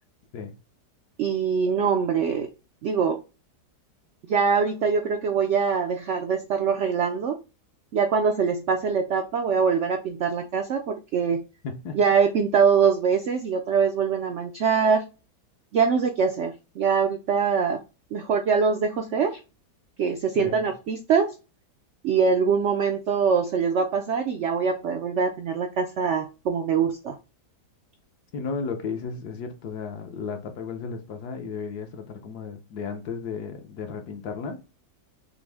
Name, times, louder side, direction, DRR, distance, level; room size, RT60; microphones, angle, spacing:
voice 1, 1.2-2.5 2.8-3.2 4.3-7.4 7.9-11.4 11.9-15.0 15.7-17.8 18.1-19.4 20.0-21.3 22.0-27.2, right 6 dB, 80° right, 0.6 m, -23 dB
voice 2, 11.6-12.0 20.3-20.7 28.3-34.6, left 5 dB, 70° left, 1.3 m, -34 dB
6.1 x 2.0 x 3.3 m
omnidirectional pair, 1.8 m